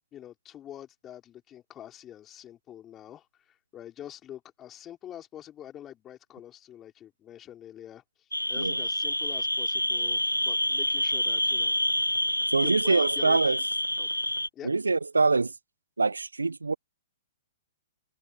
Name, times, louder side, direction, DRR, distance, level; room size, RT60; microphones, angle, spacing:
voice 1, 0.1-11.8 12.6-13.6 14.0-14.2 14.5-14.7, left 11 dB, 20° left, 5.2 m, -45 dB
sound 1, 8.3-14.5, left 1 dB, 90° left, 1.2 m, -28 dB
voice 2, 12.5-13.6 14.6-15.5 16.0-16.7, right 3 dB, 75° right, 1.0 m, -24 dB
open air
figure-of-eight pair, 115°, 0 cm